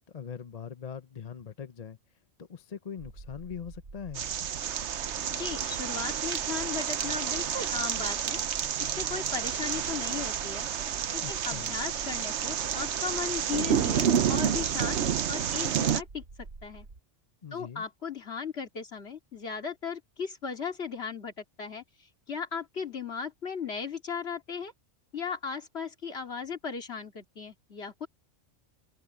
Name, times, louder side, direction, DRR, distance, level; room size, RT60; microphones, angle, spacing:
voice 1, 0.0-2.0 2.4-4.3 11.2-11.7 17.4-17.8, left 7 dB, 40° left, 0.7 m, -41 dB
sound 1, 3.0-17.0, right 3 dB, 80° right, 2.5 m, -48 dB
sound 2, 4.1-16.0, right 8 dB, 65° right, 1.1 m, -30 dB
voice 2, 5.3-8.4 8.8-10.7 11.1-15.0 15.3-16.9 17.5-21.8 22.3-24.7 25.1-28.1, left 5 dB, 55° left, 2.5 m, -36 dB
omnidirectional pair, 1.3 m